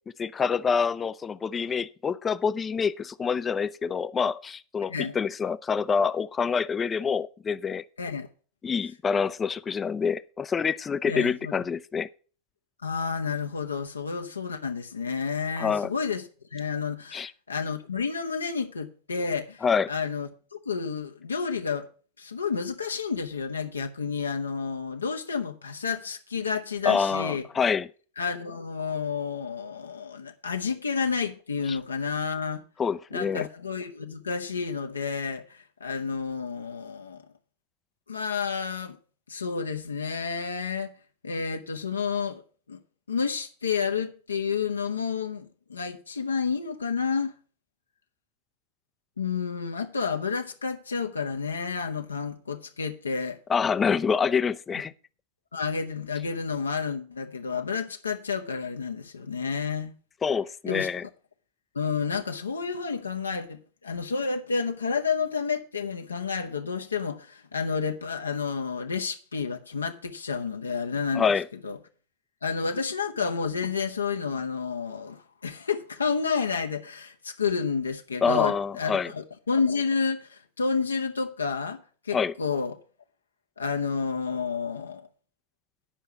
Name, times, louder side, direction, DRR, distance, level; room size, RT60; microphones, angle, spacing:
voice 1, 0.2-7.8 8.6-12.1 15.6-15.9 17.1-17.3 19.6-19.9 26.8-27.9 31.7-31.8 32.8-33.5 53.5-54.9 60.2-61.0 71.1-71.5 78.2-79.1 82.1-82.3, left 6 dB, 20° left, 0.5 m, -26 dB
voice 2, 11.1-11.5 12.8-16.2 16.5-21.9 22.2-27.4 28.2-32.6 33.1-37.2 38.1-39.0 39.3-40.9 41.2-42.4 42.7-42.8 43.1-47.3 49.2-53.4 55.5-59.9 60.7-60.9 61.7-71.2 71.6-71.8 72.4-82.8 83.6-85.1, left 5 dB, 75° left, 0.8 m, -30 dB
10.0 x 5.6 x 7.2 m
figure-of-eight pair, 90°, 0 cm